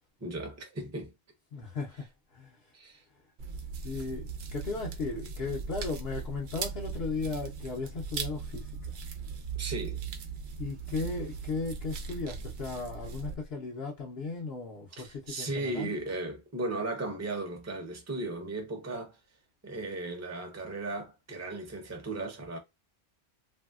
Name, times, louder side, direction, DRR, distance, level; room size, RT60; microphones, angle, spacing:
voice 1, 0.2-1.1 2.7-3.0 5.1-5.3 9.5-10.0 14.9-19.2 19.6-22.6, right 2 dB, 15° right, 0.7 m, -36 dB
voice 2, 1.5-2.1 2.3-2.6 3.8-8.7 10.6-15.9, left 4 dB, 65° left, 0.9 m, -36 dB
sound 1, 3.4-13.3, right 5 dB, 75° right, 0.9 m, -39 dB
3.1 x 2.7 x 2.3 m
omnidirectional pair, 1.2 m